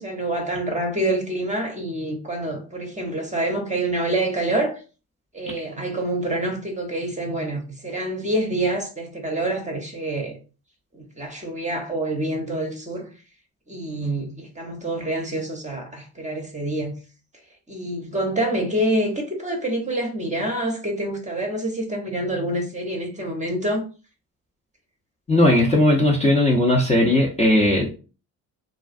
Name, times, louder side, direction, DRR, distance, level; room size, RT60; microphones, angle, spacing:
voice 1, 0.0-4.8 5.3-10.4 10.9-13.1 13.7-17.0 17.7-23.9, right 1 dB, 15° right, 0.8 m, -26 dB
voice 2, 25.3-27.9, left 1 dB, 15° left, 0.6 m, -18 dB
2.4 x 2.3 x 2.4 m
hypercardioid pair, 60°, 44 cm